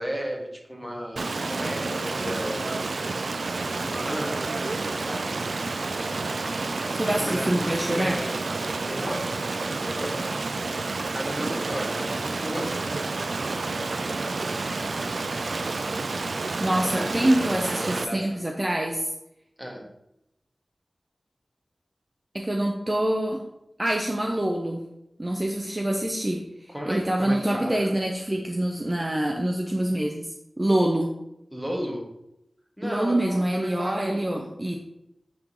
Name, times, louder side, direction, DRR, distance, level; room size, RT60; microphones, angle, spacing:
voice 1, 0.0-2.9 3.7-5.4 7.0-8.5 8.8-10.2 11.1-12.9 13.7-14.3 16.9-18.5 19.6-19.9 26.7-27.9 31.5-32.1 32.8-34.2, equal, ahead, -1 dB, 1.6 m, -34 dB
Stream, 1.2-18.0, right 3 dB, 85° right, 0.4 m, -29 dB
voice 2, 6.9-8.2 16.6-19.1 22.3-23.4 23.8-24.8 25.2-31.1 32.8-34.8, right 1 dB, 30° right, 1 dB, 0.7 m, -25 dB
10.0 x 3.7 x 3.1 m, 0.84 s
wide cardioid pair, 75°, 0 cm